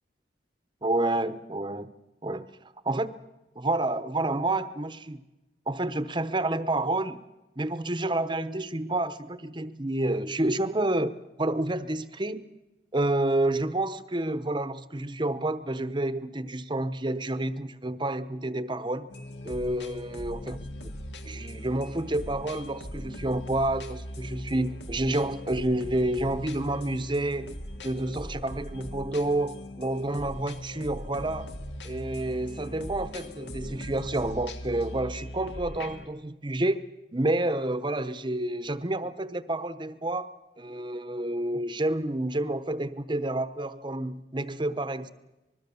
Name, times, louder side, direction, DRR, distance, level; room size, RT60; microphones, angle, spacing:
voice 1, 0.8-1.9 2.2-2.5 2.8-3.1 3.6-5.2 5.7-7.2 7.6-12.5 12.9-19.1 19.4-20.6 21.2-31.5 31.8-36.8 37.1-40.3 40.6-45.1, right 1 dB, 25° right, 13 dB, 0.9 m, -29 dB
sound 1, 19.1-36.1, equal, 75° left, 2.0 m, -40 dB
25.5 x 21.0 x 7.0 m, 1.0 s
head